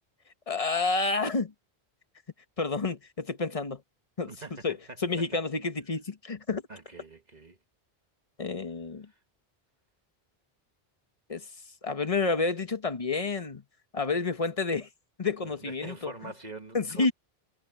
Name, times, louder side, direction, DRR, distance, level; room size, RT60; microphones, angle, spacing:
voice 1, 0.5-1.5 2.6-3.8 4.2-4.3 4.6-6.6 8.4-9.1 11.3-11.5 11.8-13.6 13.9-14.9 15.2-16.1 16.7-17.1, left 3 dB, 35° left, 1.1 m, -29 dB
voice 2, 4.3-5.0 6.7-7.6 9.1-9.2 15.4-17.1, right 3 dB, 45° right, 1.5 m, -44 dB
omnidirectional pair, 1.1 m